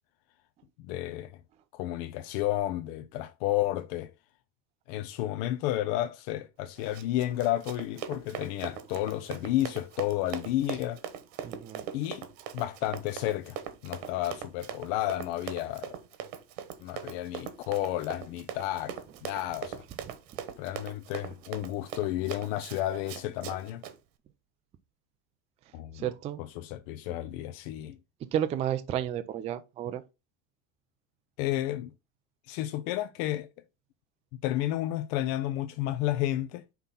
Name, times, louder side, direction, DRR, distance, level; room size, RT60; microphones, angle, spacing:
voice 1, 0.8-1.4 1.7-4.1 4.9-11.0 11.9-12.2 12.5-16.0 16.8-19.8 20.6-23.8 25.7-26.0 26.6-28.0 31.4-31.9 32.5-33.5 34.4-36.6, left 14 dB, 65° left, 0.6 m, -31 dB
Run, 6.8-24.0, right 9 dB, 85° right, 1.3 m, -41 dB
voice 2, 11.4-11.9 20.1-20.2 25.9-26.4 28.3-30.0, right 10 dB, 20° right, 0.3 m, -32 dB
5.7 x 3.7 x 5.6 m
cardioid pair, 170°, 31 cm